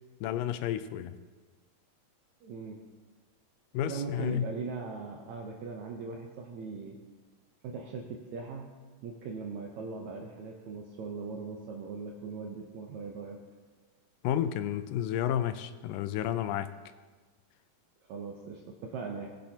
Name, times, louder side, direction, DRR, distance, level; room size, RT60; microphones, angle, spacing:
voice 1, 0.2-1.1 3.7-4.5 14.2-16.7, left 10 dB, 90° left, 11 dB, 2.3 m, -31 dB
voice 2, 2.4-2.8 3.9-7.0 7.6-8.7 9.0-13.4 18.1-19.3, right 4 dB, 70° right, 0 dB, 2.0 m, -39 dB
19.0 x 10.5 x 2.9 m, 1.4 s
omnidirectional pair, 3.8 m